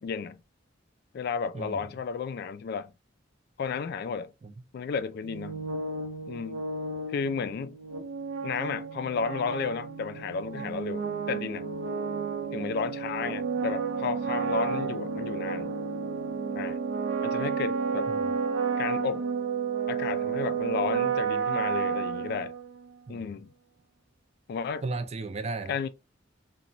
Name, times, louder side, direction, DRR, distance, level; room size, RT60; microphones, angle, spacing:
voice 1, 0.0-0.4 1.1-2.9 3.6-4.3 4.7-5.7 6.3-6.6 7.1-7.8 8.4-11.7 12.5-15.8 16.5-16.8 17.2-18.1 18.8-19.2 19.9-22.5 23.1-23.5 24.5-24.8 25.7-25.9, left 6 dB, 55° left, 0.3 m, -33 dB
voice 2, 1.5-1.8 4.4-4.5 18.1-18.2 23.1-23.3 24.8-25.7, right 3 dB, 35° right, 0.4 m, -35 dB
sound 1, 5.2-22.9, right 5 dB, 70° right, 0.7 m, -31 dB
2.9 x 2.2 x 2.5 m
head